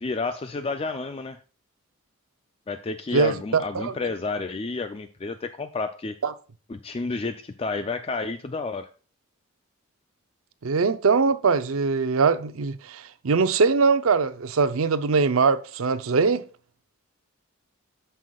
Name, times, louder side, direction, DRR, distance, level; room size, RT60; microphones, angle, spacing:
voice 1, 0.0-1.4 2.7-6.2 6.7-8.9, left 3 dB, 25° left, 0.4 m, -30 dB
voice 2, 3.1-3.9 6.2-6.3 10.6-16.4, right 4 dB, 75° right, 0.6 m, -22 dB
13.5 x 5.6 x 2.3 m
head